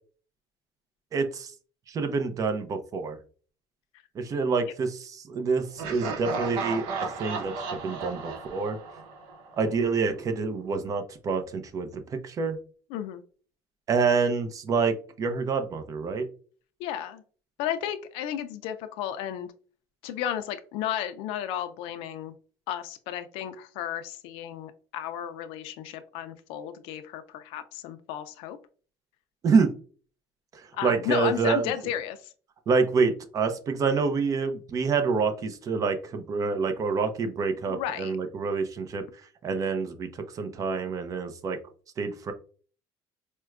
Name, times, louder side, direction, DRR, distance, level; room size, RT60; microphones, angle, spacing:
voice 1, 1.1-1.5 1.9-3.2 4.1-8.8 9.6-12.6 13.9-16.3 29.4-29.7 30.5-31.7 32.7-39.0 39.4-41.6 42.0-42.3, right 4 dB, 40° right, 8 dB, 0.6 m, -27 dB
Laughter, 5.8-9.7, right 4 dB, 85° right, 0.8 m, -34 dB
voice 2, 12.9-13.2 16.8-17.2 17.6-19.5 20.0-22.3 22.7-28.6 30.7-32.3 37.7-38.1, left 10 dB, 85° left, 10 dB, 0.4 m, -33 dB
4.4 x 2.1 x 2.3 m, 0.40 s
cardioid pair, 125°, 9 cm